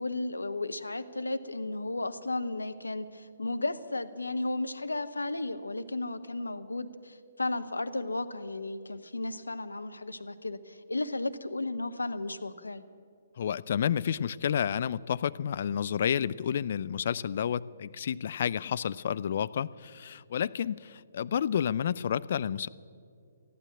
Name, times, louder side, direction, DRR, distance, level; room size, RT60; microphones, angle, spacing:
voice 1, 0.0-12.8, left 2 dB, 80° left, 10 dB, 0.8 m, -34 dB
voice 2, 13.4-22.7, left 8 dB, 50° left, 16 dB, 0.3 m, -30 dB
14.0 x 11.5 x 7.6 m, 2.3 s
figure-of-eight pair, 130°, 0 cm